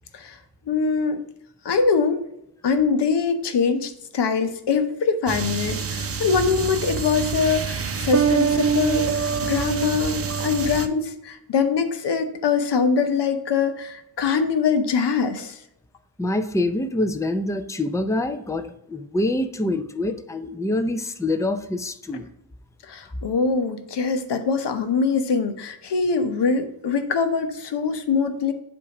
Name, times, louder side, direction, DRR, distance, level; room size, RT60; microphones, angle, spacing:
voice 1, 0.7-1.2 1.6-2.2 2.6-15.6 22.9-28.5, left 5 dB, 65° left, 8 dB, 0.9 m, -23 dB
sound 1, 5.3-10.9, right 6 dB, 30° right, 0.7 m, -25 dB
voice 2, 16.2-22.3, left 1 dB, 5° left, 8 dB, 0.6 m, -25 dB
8.0 x 2.7 x 5.8 m, 0.77 s
cardioid pair, 65°, 44 cm